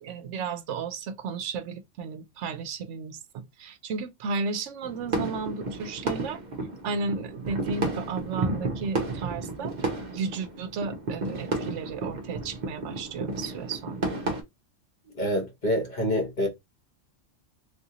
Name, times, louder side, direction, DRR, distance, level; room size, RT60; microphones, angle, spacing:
voice 1, 0.0-6.4 6.8-9.7 10.1-14.1, right 5 dB, 75° right, 0.9 m, -34 dB
sound 1, 4.8-14.4, right 2 dB, 45° right, 0.8 m, -32 dB
voice 2, 15.2-16.5, equal, 40° left, 1.3 m, -26 dB
3.5 x 2.6 x 2.8 m
omnidirectional pair, 1.3 m